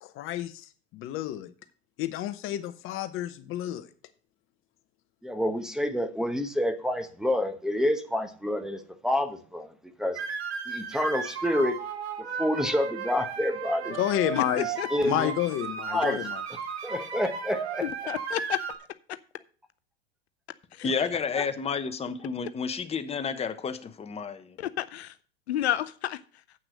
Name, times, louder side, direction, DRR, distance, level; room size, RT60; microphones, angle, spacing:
voice 1, 0.0-1.5 2.0-3.9 13.9-14.7 15.0-16.4, left 13 dB, 40° left, 0.8 m, -30 dB
voice 2, 5.2-10.2 10.7-11.8 12.2-14.0 14.5-15.3 15.9-16.2 16.8-17.9 21.3-21.4, left 1 dB, ahead, 1.0 m, -28 dB
sound 1, 10.1-18.8, right 6 dB, 70° right, 1.4 m, -35 dB
voice 3, 17.8-18.6 20.7-20.9 24.6-25.1 25.5-26.2, left 12 dB, 75° left, 0.6 m, -30 dB
voice 4, 20.8-24.6, left 5 dB, 20° left, 1.0 m, -31 dB
7.9 x 6.0 x 6.3 m
hypercardioid pair, 90°, 33 cm